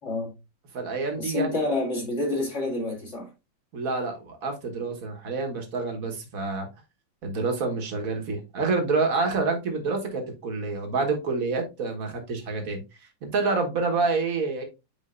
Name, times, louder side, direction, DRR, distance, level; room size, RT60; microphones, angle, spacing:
voice 1, 0.0-0.3 1.2-3.3, left 2 dB, 35° left, 2.5 m, -28 dB
voice 2, 0.7-1.6 3.7-6.7 7.2-12.8 13.2-14.6, right 4 dB, 50° right, 1.7 m, -27 dB
8.7 x 4.6 x 2.5 m
omnidirectional pair, 2.1 m